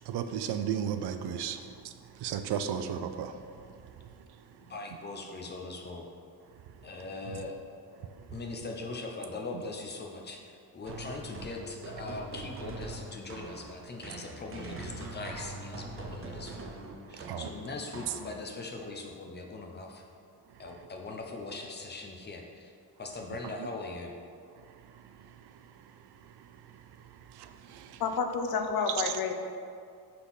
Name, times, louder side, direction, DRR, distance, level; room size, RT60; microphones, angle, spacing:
voice 1, 0.1-1.9 2.2-3.4 17.1-17.5 26.4-26.5 27.3-28.0, right 8 dB, 80° right, 0.6 m, -34 dB
voice 2, 4.6-6.1 6.8-7.6 8.3-16.7 17.1-20.0 20.6-22.7 23.0-24.1, left 3 dB, 25° left, 0.7 m, -41 dB
sound 1, 10.9-18.7, right 2 dB, 35° right, 0.7 m, -43 dB
voice 3, 28.0-29.3, left 5 dB, 65° left, 0.7 m, -29 dB
6.5 x 5.7 x 4.1 m
wide cardioid pair, 170°, 39 cm